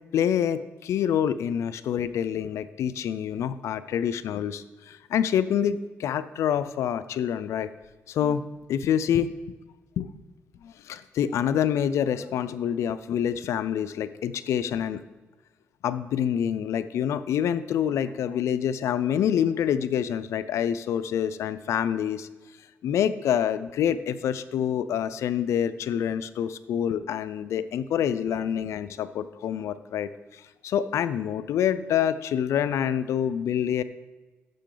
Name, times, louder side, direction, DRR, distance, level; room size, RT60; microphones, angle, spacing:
voice 1, 0.1-7.7 8.1-9.3 10.0-10.1 10.6-15.0 15.8-22.3 22.8-33.8, left 9 dB, 80° left, 14 dB, 0.4 m, -27 dB
11.5 x 7.3 x 3.9 m, 1.2 s
cardioid pair, 75°, 5 cm